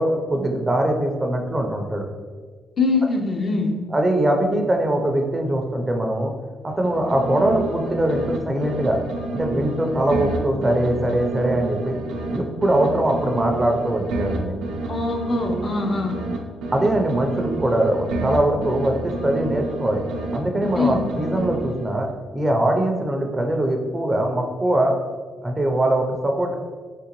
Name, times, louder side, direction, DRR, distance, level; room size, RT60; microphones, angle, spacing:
voice 1, 0.0-2.1 3.9-6.3 6.6-9.0 9.3-12.0 12.3-14.5 16.7-20.0 20.3-22.1 22.3-25.0 25.4-26.5, right 1 dB, 20° right, 3 dB, 0.5 m, -22 dB
voice 2, 2.8-3.7 14.9-16.1 20.8-21.0, left 3 dB, 45° left, 2 dB, 0.5 m, -22 dB
sound 1, 6.7-8.4 8.6-12.4 12.6-16.4 16.6-20.4 20.6-22.0, right 3 dB, 85° right, 0.5 m, -29 dB
3.7 x 3.2 x 2.9 m, 1.5 s
cardioid pair, 90°, 0 cm